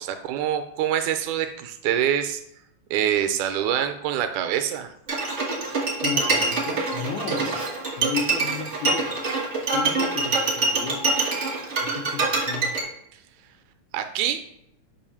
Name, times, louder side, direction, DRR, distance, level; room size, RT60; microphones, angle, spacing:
voice 1, 0.0-2.4 2.9-4.9 13.9-14.4, right 10 dB, 85° right, 7 dB, 2.1 m, -25 dB
Bowed string instrument, 5.1-12.8, right 3 dB, 55° right, 0.8 m, -25 dB
voice 2, 6.0-7.6 8.0-9.2 9.7-11.2 11.8-12.7, left 6 dB, 80° left, 0 dB, 2.1 m, -33 dB
7.0 x 2.6 x 5.6 m, 0.77 s
omnidirectional pair, 3.4 m